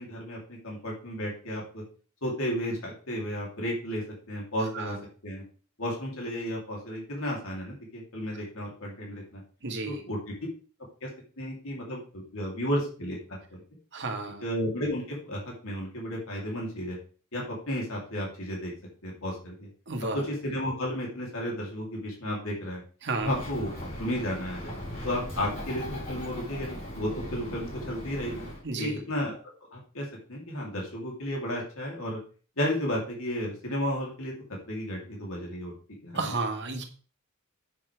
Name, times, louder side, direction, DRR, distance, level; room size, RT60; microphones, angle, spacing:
voice 1, 0.0-1.8 2.2-5.0 5.2-5.4 5.8-9.4 9.8-10.3 11.0-11.1 11.4-13.6 14.4-17.0 17.3-18.7 19.0-19.7 20.1-22.8 23.2-23.7 24.0-24.7 25.0-28.4 28.8-29.4 29.7-32.2 32.6-34.3 34.7-35.7 36.0-36.3, equal, 70° left, -2 dB, 3.2 m, -33 dB
voice 2, 9.6-10.0 13.9-14.4 19.9-20.2 23.0-23.3 28.6-29.0 36.1-36.8, right 3 dB, 55° right, 4 dB, 1.7 m, -32 dB
Bird, 23.2-28.6, equal, 35° left, 4.8 m, -39 dB
10.0 x 8.5 x 3.5 m, 0.40 s
head